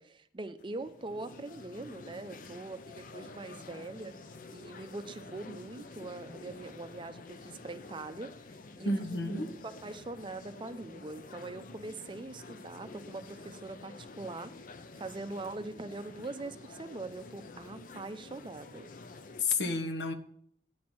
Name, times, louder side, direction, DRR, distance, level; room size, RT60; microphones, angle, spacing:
voice 1, 0.0-4.1 4.5-8.3 8.8-14.5 15.0-18.9, right 2 dB, 25° right, 0.5 m, -42 dB
sound 1, 0.6-19.4, left 3 dB, 45° left, 0.6 m, -49 dB
voice 2, 8.8-9.5 19.4-20.1, left 3 dB, 75° left, 1.0 m, -31 dB
9.4 x 4.4 x 7.5 m
head